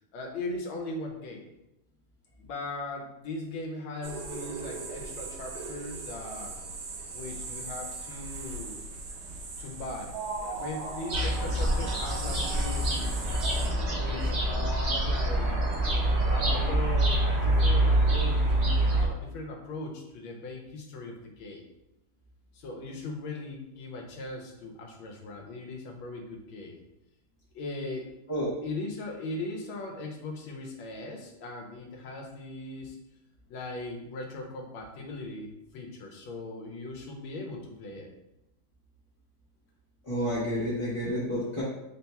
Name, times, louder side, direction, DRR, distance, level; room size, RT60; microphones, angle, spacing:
voice 1, 0.1-1.4 2.4-6.5 7.1-8.8 9.6-10.2 10.4-13.3 13.9-15.6 16.3-21.6 22.5-26.8 27.5-28.1 28.6-33.0 33.5-38.1, left 2 dB, 80° left, 1 dB, 1.5 m, -39 dB
sound 1, 4.0-13.7, right 3 dB, 70° right, 1.3 m, -38 dB
sound 2, 11.1-19.1, right 1 dB, 45° right, 0.9 m, -26 dB
voice 2, 40.0-41.6, equal, 45° left, -10 dB, 0.3 m, -30 dB
3.8 x 2.2 x 4.1 m, 0.88 s
omnidirectional pair, 2.1 m